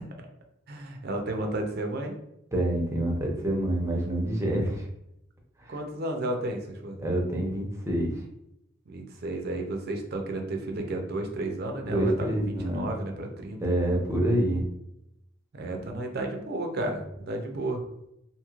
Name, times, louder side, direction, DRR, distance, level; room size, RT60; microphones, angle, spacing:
voice 1, 0.7-2.1 5.7-7.0 8.9-13.6 15.5-17.8, right 1 dB, 55° right, 3 dB, 0.5 m, -32 dB
voice 2, 2.5-4.9 5.6-5.7 7.0-8.2 11.8-12.9 13.6-14.6, right 1 dB, 15° right, -1 dB, 0.6 m, -27 dB
3.1 x 2.7 x 2.4 m, 0.80 s
head